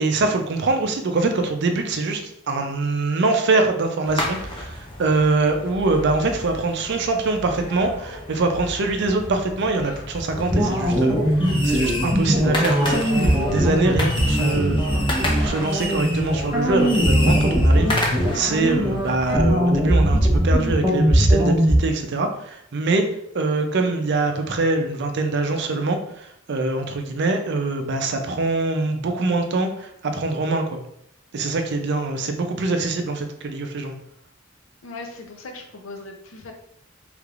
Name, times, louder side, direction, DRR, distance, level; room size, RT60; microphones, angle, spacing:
voice 1, 0.0-14.8 15.3-23.1 23.3-30.8 31.3-33.9, right 3 dB, 60° right, 5 dB, 0.5 m, -24 dB
sound 1, 4.0-19.4, left 1 dB, 25° left, 0.6 m, -31 dB
sound 2, 10.5-21.8, equal, 15° right, 0.8 m, -20 dB
voice 2, 34.8-36.5, left 3 dB, 75° left, 3 dB, 0.6 m, -38 dB
3.3 x 3.2 x 2.4 m, 0.73 s
head